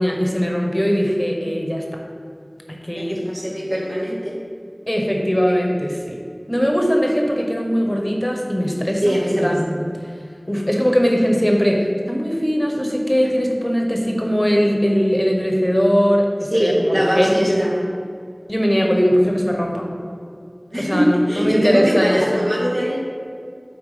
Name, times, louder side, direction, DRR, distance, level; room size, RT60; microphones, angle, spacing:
voice 1, 0.0-2.0 2.7-3.2 4.9-6.2 6.5-9.7 10.5-17.7 18.5-19.9 20.8-22.5, equal, 15° left, 1 dB, 1.1 m, -20 dB
voice 2, 2.9-4.4 9.0-9.9 16.5-17.8 20.7-23.0, equal, 80° right, -6 dB, 1.8 m, -21 dB
8.0 x 4.3 x 5.0 m, 2.2 s
wide cardioid pair, 40°, 0 cm